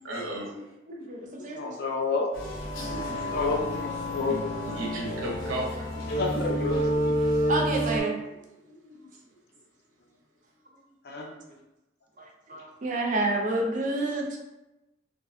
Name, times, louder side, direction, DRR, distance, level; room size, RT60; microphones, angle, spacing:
voice 1, 0.0-0.7 2.8-3.7 4.3-4.4 4.6-5.9 8.6-9.1, right 1 dB, 80° right, -1 dB, 0.7 m, -36 dB
voice 2, 0.9-1.6 7.5-8.2 11.2-11.6 12.2-14.4, right 2 dB, 40° right, 1 dB, 0.4 m, -29 dB
voice 3, 1.4-2.4 2.6-4.4 6.2-7.1 11.0-11.3, left 3 dB, 50° left, 1 dB, 0.4 m, -30 dB
sound 1, 2.3-8.0, equal, 85° left, 0.8 m, -29 dB
2.5 x 2.5 x 2.5 m, 0.96 s
head